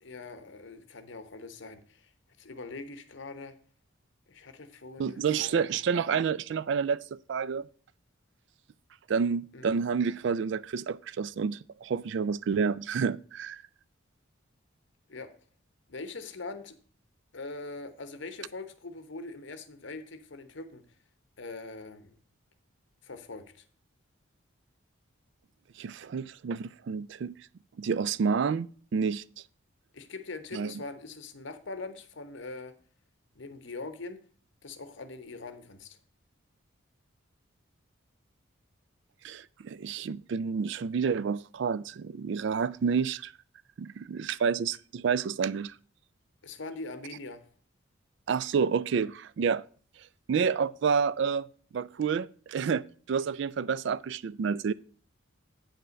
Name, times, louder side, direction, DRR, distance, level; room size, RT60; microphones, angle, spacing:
voice 1, 0.0-2.1 2.4-3.5 4.3-5.8 9.5-9.9 15.1-15.3 15.9-16.7 17.3-20.8 21.4-22.2 23.0-23.6 29.9-32.7 33.4-34.2 34.6-36.0 46.4-47.5, left 3 dB, 60° left, 0.9 m, -42 dB
voice 2, 5.0-7.6 9.1-13.6 25.8-27.3 27.8-29.2 30.5-30.7 39.2-43.3 43.8-45.7 48.3-49.6 50.3-51.5 51.7-54.7, right 6 dB, 60° right, 0.3 m, -29 dB
8.7 x 5.5 x 5.1 m
head